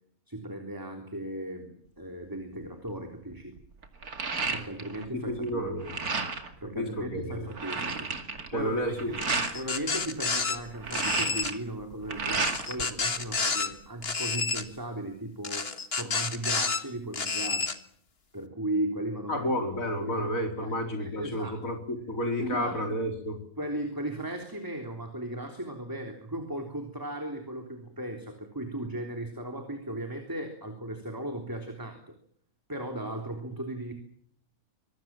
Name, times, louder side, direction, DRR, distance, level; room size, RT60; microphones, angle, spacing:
voice 1, 0.3-3.5 4.5-5.7 6.6-8.1 8.5-8.7 9.1-9.2 9.5-17.7 18.3-19.5 20.0-20.3 20.6-21.6 22.4-22.9 23.6-32.1 32.7-33.9, right 1 dB, 15° right, 4 dB, 3.4 m, -36 dB
sound 1, 2.6-2.9 3.3-5.1 5.4-6.5 7.0-7.1 7.3-9.6 10.6-12.8 13.2-14.1, right 4 dB, 75° right, 2.8 m, -32 dB
voice 2, 5.1-5.9 6.8-7.5 8.5-9.1 19.3-23.4, equal, 60° left, 4 dB, 4.4 m, -31 dB
sound 2, 9.2-10.6 10.9-11.5 12.3-13.7 14.0-14.6 15.4-16.8 17.1-17.7, left 4 dB, 40° left, 1.8 m, -30 dB
25.5 x 21.5 x 7.6 m, 0.62 s
omnidirectional pair, 1.6 m